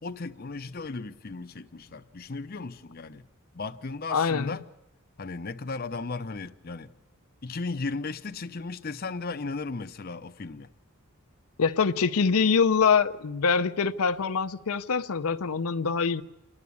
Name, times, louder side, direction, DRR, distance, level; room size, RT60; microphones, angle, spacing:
voice 1, 0.0-3.2 3.5-4.6 5.2-6.9 7.4-10.7, left 3 dB, 45° left, 0.7 m, -36 dB
voice 2, 4.1-4.6 11.6-16.2, left 5 dB, 75° left, 0.6 m, -24 dB
28.5 x 11.0 x 8.5 m
head